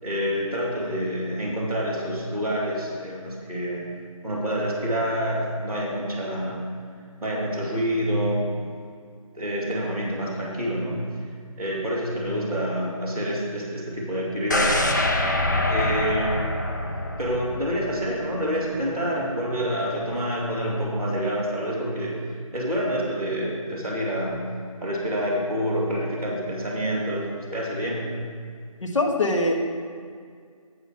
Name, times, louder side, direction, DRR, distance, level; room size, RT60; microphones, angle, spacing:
voice 1, 0.0-3.8 4.2-6.7 7.2-8.8 9.3-11.0 11.6-15.2 15.7-16.4 17.2-22.3 22.5-24.5 24.8-28.1, equal, 5° right, -15 dB, 0.8 m, -27 dB
sound 1, 14.5-18.5 18.8-18.9, left 1 dB, 30° left, 0.5 m, -25 dB
voice 2, 28.8-29.5, left 2 dB, 55° left, 1 dB, 1.2 m, -22 dB
8.1 x 5.5 x 5.9 m, 2.1 s
figure-of-eight pair, 170°, 18 cm